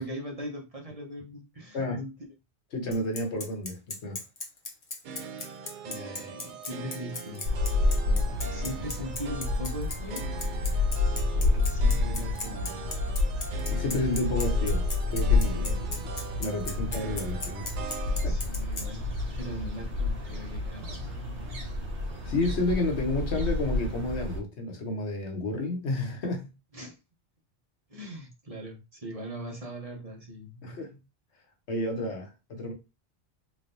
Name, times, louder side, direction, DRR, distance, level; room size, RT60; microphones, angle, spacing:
voice 1, 0.0-2.1 5.8-7.5 7.8-10.3 11.3-12.9 18.1-21.6 26.7-27.0 27.9-30.7, equal, 35° right, 0.9 m, -40 dB
voice 2, 2.7-4.2 13.7-16.1 16.4-17.9 18.2-18.3 22.2-26.5 30.6-31.0 31.7-32.7, left 2 dB, 75° left, 1.3 m, -31 dB
Bicycle, 2.9-18.8, left 3 dB, 40° left, 0.9 m, -36 dB
sound 1, 5.0-18.3, right 5 dB, 60° right, 0.6 m, -42 dB
sound 2, 7.4-24.4, left 3 dB, 85° right, 1.6 m, -29 dB
3.8 x 3.3 x 2.6 m
omnidirectional pair, 1.1 m